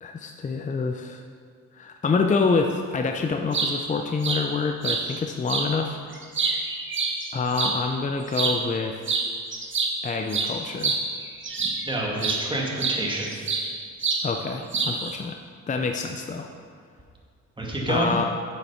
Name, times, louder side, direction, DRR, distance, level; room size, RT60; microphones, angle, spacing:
voice 1, 0.0-1.2 1.7-6.0 7.3-9.1 10.0-11.0 14.2-15.4 15.7-16.5 17.9-18.3, left 4 dB, 25° left, 4 dB, 0.6 m, -26 dB
sound 1, 3.3-3.7 4.2-4.4 4.8-5.0 5.5-5.7 6.1-7.8 8.3-8.6 9.1-9.3 9.5-11.8 12.2-12.4 12.8-13.7 14.0-14.2 14.7-15.1, right 4 dB, 40° right, 1.5 m, -26 dB
voice 2, 11.9-13.3 17.6-18.2, right 1 dB, 15° right, -2 dB, 2.1 m, -27 dB
7.6 x 7.3 x 5.6 m, 2.1 s
cardioid pair, 90°, 30 cm